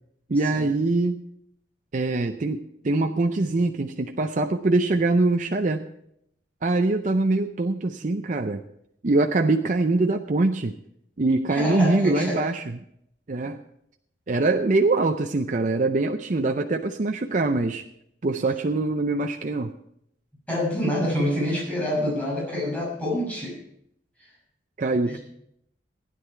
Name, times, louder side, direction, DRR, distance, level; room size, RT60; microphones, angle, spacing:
voice 1, 0.3-1.2 1.9-5.8 6.6-8.6 9.0-10.8 11.2-12.6 13.3-13.6 14.3-17.8 18.2-19.7 24.8-25.2, right 2 dB, 45° right, 5 dB, 0.5 m, -23 dB
voice 2, 11.5-12.4 20.5-23.6 24.2-24.3 25.1-25.2, left 1 dB, 10° left, -4 dB, 6.2 m, -27 dB
15.5 x 10.0 x 4.6 m, 0.74 s
head